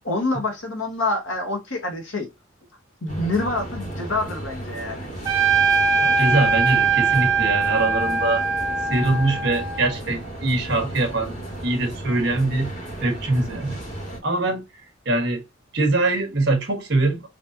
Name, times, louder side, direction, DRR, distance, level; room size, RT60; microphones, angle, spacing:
voice 1, 0.0-2.3 3.0-5.1, left 2 dB, 80° left, 1.6 m, -26 dB
sound 1, 3.1-14.2, right 1 dB, 40° left, 2.0 m, -34 dB
Trumpet, 5.2-10.0, right 5 dB, 20° right, 1.0 m, -21 dB
voice 2, 6.0-8.5 8.9-11.3 11.6-12.7 13.0-13.8 14.2-14.6 15.0-15.4 15.7-17.3, right 2 dB, 55° right, 1.5 m, -23 dB
4.2 x 3.3 x 2.8 m
head